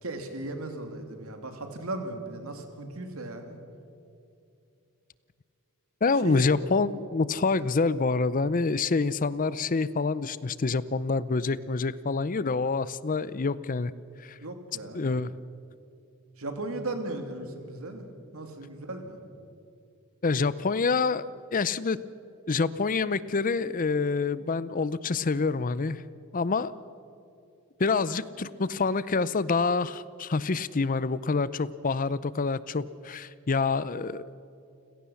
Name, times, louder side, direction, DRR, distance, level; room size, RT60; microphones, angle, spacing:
voice 1, 0.0-3.6 6.2-6.4 14.4-15.0 16.4-18.0 18.3-19.2, right 2 dB, 70° right, 5 dB, 2.7 m, -36 dB
voice 2, 6.0-13.9 14.2-14.4 14.9-15.3 20.2-21.3 21.5-22.0 22.5-26.0 26.3-26.7 27.8-34.4, left 4 dB, 40° left, 17 dB, 0.5 m, -27 dB
29.5 x 16.5 x 7.1 m, 2.6 s
head